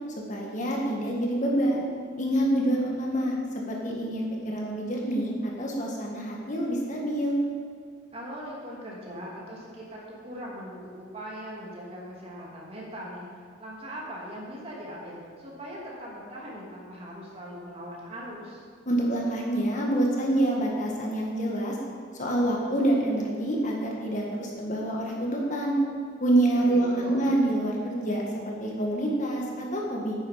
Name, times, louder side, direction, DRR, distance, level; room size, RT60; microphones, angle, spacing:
voice 1, 0.3-1.8 2.2-3.4 3.7-7.4 18.9-21.8 22.1-25.8 26.2-30.2, right 1 dB, 45° left, -2 dB, 1.9 m, -27 dB
voice 2, 8.1-18.6 26.7-27.3, equal, 35° right, -4 dB, 2.8 m, -40 dB
10.5 x 9.4 x 5.8 m, 2.1 s
head